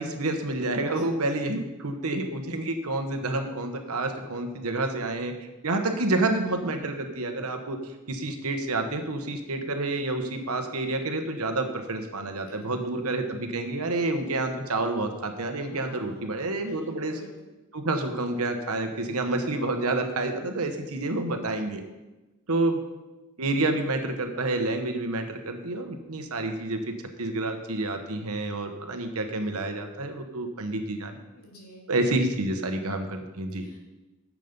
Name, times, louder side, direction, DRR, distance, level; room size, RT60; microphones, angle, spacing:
voice 1, 0.0-5.3 5.6-7.8 8.1-17.2 17.7-21.8 22.5-22.8 23.4-31.2 31.9-33.6, right 2 dB, 85° right, 6 dB, 1.2 m, -29 dB
voice 2, 12.3-12.9 15.6-17.5 31.3-31.9 33.5-33.8, equal, 85° left, -2 dB, 2.8 m, -50 dB
9.4 x 7.5 x 5.3 m, 1.1 s
head